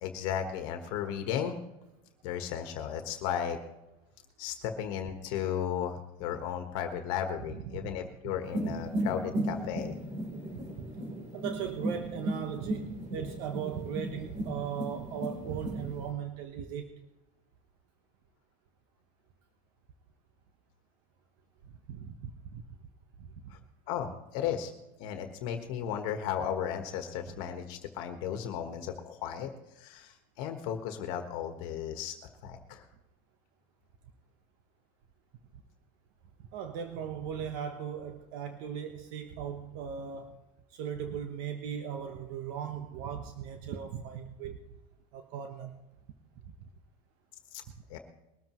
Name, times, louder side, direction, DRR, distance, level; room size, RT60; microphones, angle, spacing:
voice 1, 0.0-1.6 2.2-3.6 4.4-9.9 23.5-23.6 23.9-24.7 25.0-29.5 29.8-32.2 32.4-32.8 47.5-47.6 47.9-48.0, left 9 dB, 65° left, 5 dB, 1.4 m, -35 dB
voice 2, 7.5-7.9 8.2-8.3 10.8-10.9 11.3-16.9 21.9-22.6 23.2-23.5 27.3-27.4 36.5-40.4 40.7-44.6 45.1-45.8, right 8 dB, 60° right, 5 dB, 1.2 m, -38 dB
sound 1, 8.4-16.1, right 1 dB, 40° right, 4.1 m, -36 dB
21.5 x 13.5 x 3.1 m, 0.96 s
cardioid pair, 160°, 19 cm